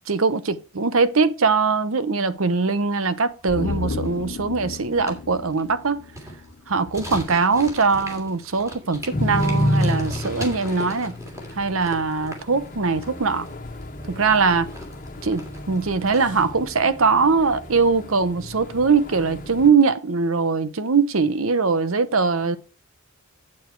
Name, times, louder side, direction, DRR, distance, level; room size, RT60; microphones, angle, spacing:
voice 1, 0.1-6.0 6.7-11.1 11.5-13.5 14.1-14.7 15.2-22.6, right 4 dB, 70° right, 0.9 m, -21 dB
sound 1, 2.3-2.8 3.1-3.2 3.4-16.3, equal, 15° right, 2.9 m, -39 dB
sound 2, 3.5-6.9 7.2-7.3, left 4 dB, 60° left, 0.6 m, -33 dB
sound 3, 9.1-19.7, left 1 dB, 40° left, 1.3 m, -30 dB
8.6 x 7.2 x 4.6 m
head